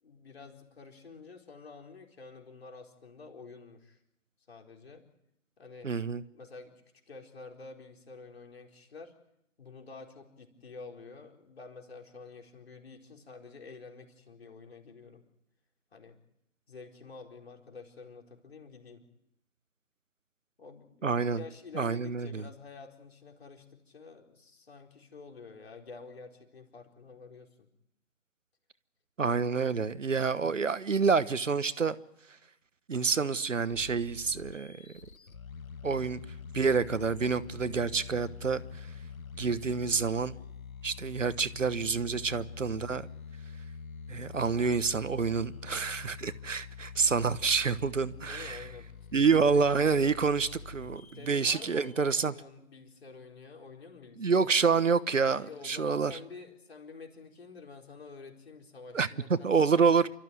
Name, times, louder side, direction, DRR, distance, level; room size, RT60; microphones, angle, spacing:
voice 1, 0.0-4.0 4.5-5.0 5.6-5.9 6.3-6.7 7.1-9.1 9.6-15.2 15.9-16.2 16.7-19.0 20.6-27.7 42.0-42.3 48.3-48.9 49.4-49.7 51.1-54.5 55.3-60.0, left 4 dB, 50° left, 4.4 m, -49 dB
voice 2, 5.8-6.2 21.0-21.4 21.7-22.4 29.2-32.0 32.9-34.8 35.8-36.2 36.5-38.6 39.4-40.3 40.8-43.1 44.1-48.6 49.1-52.3 54.2-56.2 58.9-60.1, right 5 dB, 65° right, 1.2 m, -28 dB
sound 1, 33.7-52.2, left 5 dB, 90° left, 1.2 m, -45 dB
29.0 x 13.5 x 9.3 m
figure-of-eight pair, 155°, 40 cm